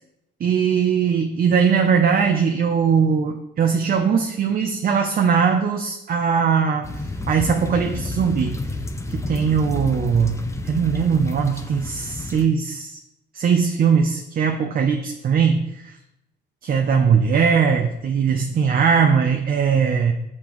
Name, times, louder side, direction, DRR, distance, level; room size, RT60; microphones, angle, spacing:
voice 1, 0.4-6.9 7.3-8.6 9.1-10.4 10.6-13.0 13.3-15.9 16.6-20.1, right 6 dB, 45° right, 4 dB, 0.6 m, -20 dB
sound 1, 6.8-12.4, left 2 dB, 15° left, 0.6 m, -30 dB
6.7 x 5.6 x 3.1 m, 0.87 s
cardioid pair, 90°, 20 cm